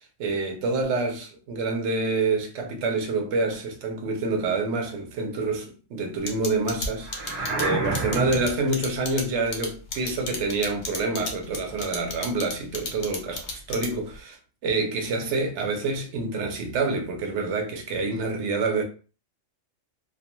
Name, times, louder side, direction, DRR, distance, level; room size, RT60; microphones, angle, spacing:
voice 1, 0.2-14.4 14.6-18.8, right 3 dB, 65° right, 0.9 m, -27 dB
sound 1, 6.3-14.2, left 3 dB, 70° left, 1.0 m, -33 dB
sound 2, 7.0-8.6, right 2 dB, 35° right, 0.7 m, -29 dB
2.5 x 2.2 x 2.9 m
omnidirectional pair, 1.3 m